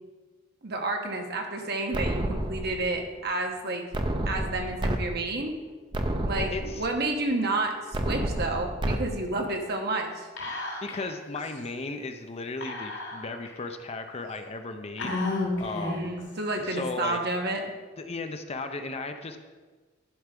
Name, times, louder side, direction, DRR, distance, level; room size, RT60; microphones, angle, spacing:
voice 1, 0.6-3.8 4.3-5.5 6.2-10.3 15.8-17.6, right 2 dB, 60° right, 3 dB, 1.2 m, -30 dB
sound 1, 1.9-2.9 3.9-5.0 5.4-5.5 5.9-6.9 7.9-9.0, right 1 dB, 25° right, 0.6 m, -29 dB
voice 2, 6.4-6.9 10.8-15.2 15.5-16.1 16.6-17.2 18.0-19.4, left 3 dB, 35° left, 7 dB, 0.6 m, -36 dB
Whispering, 10.4-11.1 11.4-11.5 12.6-13.5 14.1-14.2 15.0-16.2, left 2 dB, 80° left, 3.2 m, -32 dB
11.5 x 4.6 x 5.2 m, 1.3 s
head